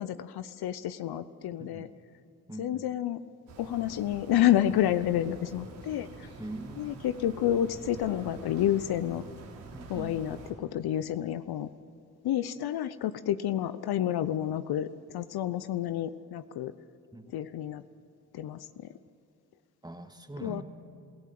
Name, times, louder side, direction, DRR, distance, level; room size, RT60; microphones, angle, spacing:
voice 1, 0.0-1.9 2.6-3.2 3.6-6.3 6.8-9.2 9.9-11.7 12.2-14.9 15.1-16.7 17.3-17.8 18.3-18.9 20.4-20.6, left 11 dB, 60° left, 13 dB, 0.8 m, -29 dB
voice 2, 2.5-2.8 6.4-6.8 9.7-10.2 17.1-17.3 19.8-20.6, right 1 dB, 10° right, 5 dB, 2.4 m, -42 dB
sound 1, 3.5-10.5, right 3 dB, 80° right, 3.6 m, -47 dB
27.0 x 17.0 x 7.7 m, 2.4 s
hypercardioid pair, 45°, 42 cm